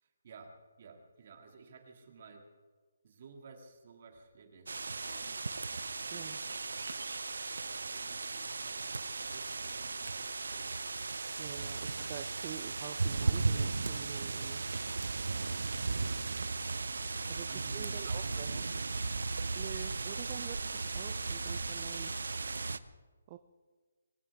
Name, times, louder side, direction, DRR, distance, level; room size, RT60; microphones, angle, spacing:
voice 1, 0.0-2.5 3.0-5.4 6.1-6.5 7.5-11.0 11.4-11.7 14.5-16.8 17.1-18.8, right 5 dB, 40° right, 4 dB, 2.2 m, -55 dB
sound 1, 4.7-22.8, right 3 dB, 85° right, 0.7 m, -36 dB
voice 2, 11.4-14.6 17.3-18.5 19.5-22.1 23.3-23.4, right 12 dB, 25° right, 9 dB, 0.5 m, -47 dB
23.0 x 16.5 x 3.6 m, 1.4 s
hypercardioid pair, 165°, 0 cm